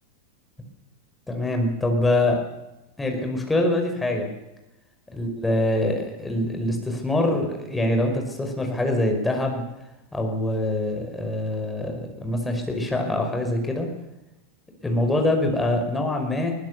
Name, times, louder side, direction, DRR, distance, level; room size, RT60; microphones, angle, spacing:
voice 1, 1.3-2.4 3.0-4.3 5.1-9.6 10.1-13.9 14.8-16.6, left 1 dB, 10° left, 3 dB, 5.5 m, -24 dB
22.5 x 19.5 x 7.0 m, 0.96 s
figure-of-eight pair, 90°, 0 cm